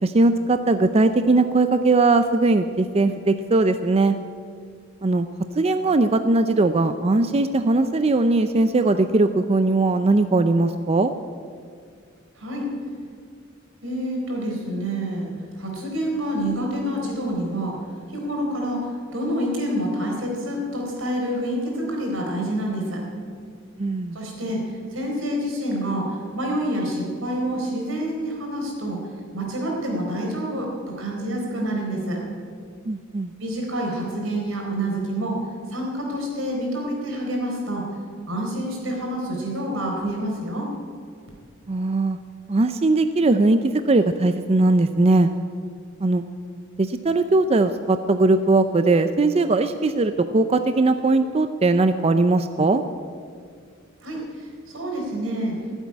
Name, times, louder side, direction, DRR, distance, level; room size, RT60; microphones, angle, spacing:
voice 1, 0.0-4.2 5.0-5.3 5.6-11.1 23.8-24.2 32.9-33.3 41.7-42.2 42.5-45.3 46.0-46.2 46.8-52.8, right 2 dB, 30° right, 10 dB, 0.5 m, -19 dB
voice 2, 12.4-12.7 13.8-17.7 18.1-23.0 24.1-29.0 29.3-32.2 33.4-35.4 35.7-37.9 38.3-40.7 54.0-54.5 54.7-55.6, right 1 dB, 90° right, 0 dB, 4.1 m, -27 dB
15.5 x 8.1 x 9.6 m, 2.1 s
head